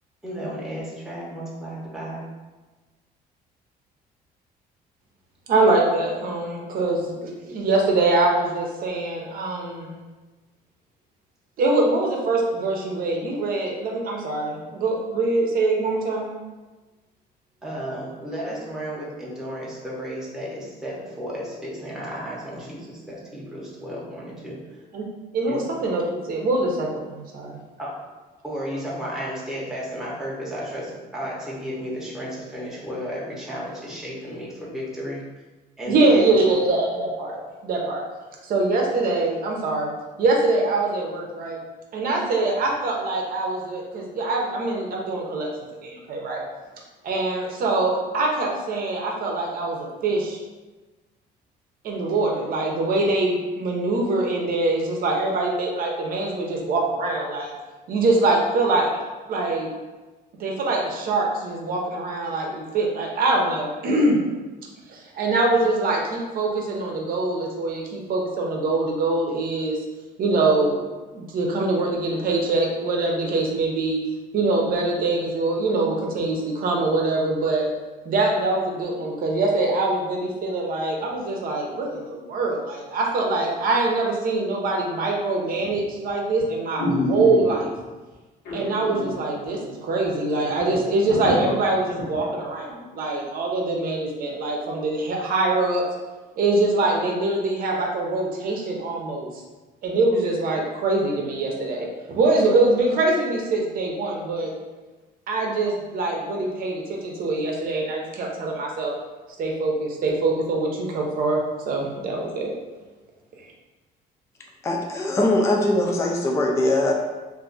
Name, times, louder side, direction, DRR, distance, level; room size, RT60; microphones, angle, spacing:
voice 1, 0.2-2.2 17.6-24.8 25.5-25.6 27.8-27.9 28.4-35.2 35.8-36.4, equal, 5° right, -6 dB, 0.8 m, -33 dB
voice 2, 5.5-9.9 11.6-16.3 24.9-25.0 25.3-27.6 35.9-38.0 38.4-39.9 40.2-41.6 41.9-45.5 45.8-46.4 47.0-50.4 51.8-57.5 57.9-58.9 59.3-59.7 60.4-64.2 64.9-69.8 70.2-70.8 71.1-74.0 74.3-77.7 78.0-87.7 88.5-95.8 96.4-99.3 99.8-104.5 105.3-108.9 109.4-112.5, right 2 dB, 60° right, -1 dB, 0.7 m, -23 dB
sound 1, 85.6-85.9 86.4-86.5 86.8-87.8 88.4-89.1 89.4-89.5 90.0-90.1 90.4-92.2 92.7-92.8, left 1 dB, 70° left, 1.1 m, -27 dB
voice 3, 114.6-116.9, left 1 dB, 15° left, 1 dB, 0.4 m, -21 dB
2.5 x 2.4 x 3.8 m, 1.2 s
cardioid pair, 110°, 17 cm